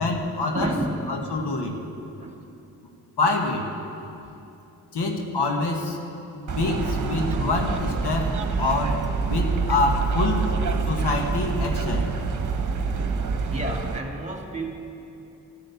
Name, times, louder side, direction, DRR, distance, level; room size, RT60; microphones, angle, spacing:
voice 1, 0.0-0.8 1.1-1.8 3.2-3.7 4.9-6.0 6.5-9.0 9.3-10.5 10.9-12.1, left 3 dB, 70° left, 2 dB, 1.5 m, -26 dB
voice 2, 0.5-1.0 2.1-2.4 13.5-14.8, right 1 dB, 15° right, 1 dB, 2.2 m, -30 dB
sound 1, 6.5-14.0, right 4 dB, 45° right, 1.1 m, -26 dB
14.0 x 6.6 x 8.3 m, 2.9 s
supercardioid pair, 45°, 41 cm